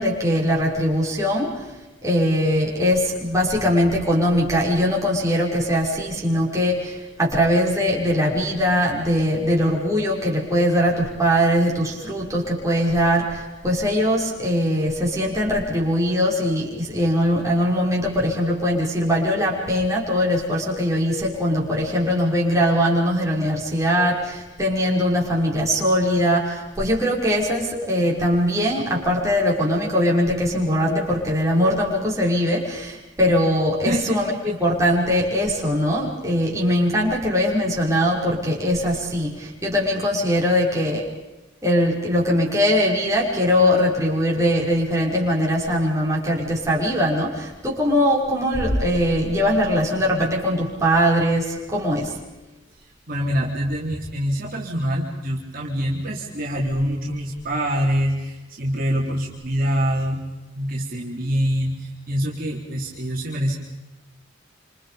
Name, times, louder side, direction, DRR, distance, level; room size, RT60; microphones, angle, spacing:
voice 1, 0.0-1.7 2.0-41.1 41.6-52.2, equal, 15° right, -3 dB, 5.9 m, -21 dB
voice 2, 33.9-34.5 53.1-60.2 60.6-63.6, equal, 45° right, -3 dB, 3.7 m, -25 dB
28.5 x 27.5 x 5.2 m, 1.1 s
head